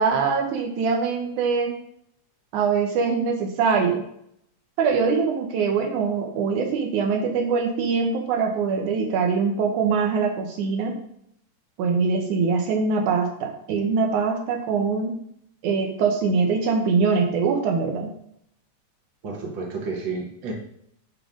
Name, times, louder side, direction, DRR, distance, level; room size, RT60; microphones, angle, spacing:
voice 1, 0.0-1.8 2.5-4.0 4.8-10.9 11.8-15.1 15.6-18.1, right 5 dB, 80° right, 3 dB, 2.3 m, -23 dB
voice 2, 19.2-20.5, right 4 dB, 45° right, -1 dB, 1.7 m, -31 dB
10.5 x 3.6 x 3.7 m, 0.71 s
omnidirectional pair, 3.5 m